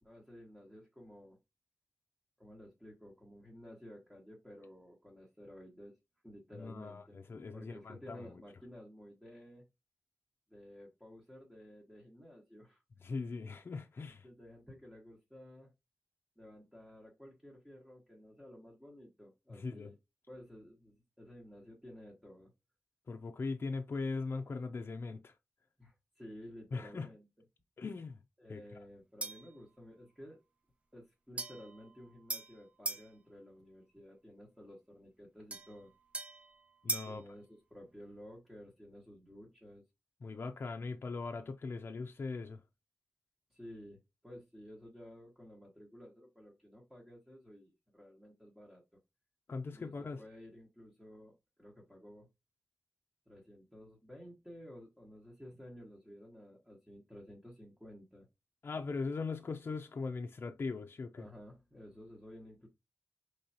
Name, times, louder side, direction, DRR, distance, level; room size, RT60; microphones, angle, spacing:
voice 1, 0.0-1.4 2.4-6.0 6.2-7.2 7.5-9.6 10.5-12.8 14.1-15.7 16.4-20.0 20.3-22.5 25.8-27.3 28.4-30.4 30.9-35.9 37.0-39.8 43.5-49.0 49.7-52.3 53.3-58.3 61.2-62.7, equal, 5° right, 1.2 m, -53 dB
voice 2, 6.6-8.4 13.0-14.3 19.6-19.9 23.1-25.3 26.7-27.1 27.8-28.2 28.5-28.6 36.8-37.2 40.2-42.6 49.5-50.2 58.6-61.3, left 4 dB, 60° left, 0.4 m, -40 dB
sound 1, 29.2-29.6 31.4-33.1 35.5-37.2, right 2 dB, 30° right, 0.4 m, -41 dB
5.3 x 3.3 x 2.8 m
wide cardioid pair, 120°, 4 cm